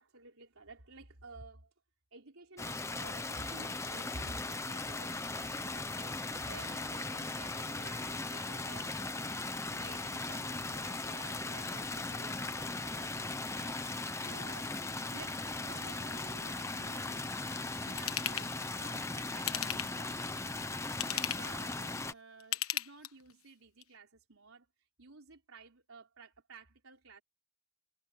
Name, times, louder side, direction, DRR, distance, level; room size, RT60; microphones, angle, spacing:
voice 1, 0.0-1.7 2.1-14.8 15.1-17.5 17.7-20.6 20.8-24.7 25.0-27.2, right 3 dB, 85° right, 4.0 m, -53 dB
sound 1, 2.6-22.1, left 3 dB, 15° left, 0.9 m, -38 dB
Ratchet pawl / Tools, 18.0-18.5 19.4-20.1 20.8-21.6 22.4-23.3 23.8-23.9, left 12 dB, 90° left, 1.3 m, -35 dB
head